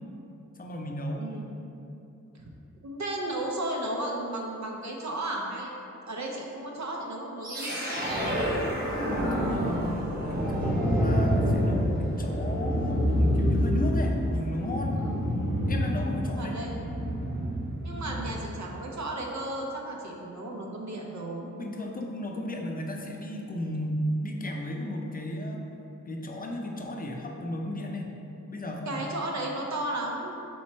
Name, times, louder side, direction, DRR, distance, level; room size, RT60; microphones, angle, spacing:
voice 1, 0.6-1.3 9.1-15.1 15.7-16.7 21.6-25.6 26.1-28.2 28.5-29.0, left 1 dB, 30° left, 1 dB, 0.5 m, -34 dB
voice 2, 1.2-1.5 2.3-2.4 2.8-5.7 6.1-8.4 15.0-15.2 16.3-16.8 17.8-21.4 28.9-30.4, right 1 dB, 60° right, 0 dB, 0.7 m, -34 dB
sound 1, 7.4-18.5, equal, 30° right, 1.2 m, -27 dB
3.3 x 3.0 x 4.2 m, 2.8 s
cardioid pair, 55°, 32 cm